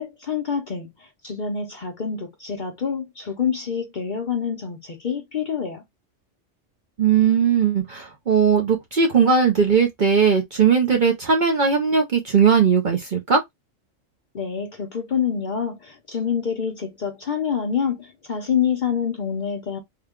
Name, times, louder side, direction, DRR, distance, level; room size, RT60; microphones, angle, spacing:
voice 1, 0.0-5.8 14.3-19.8, left 7 dB, 45° left, 0.7 m, -27 dB
voice 2, 7.0-13.4, right 6 dB, 50° right, 0.7 m, -18 dB
3.7 x 2.2 x 3.5 m
omnidirectional pair, 1.4 m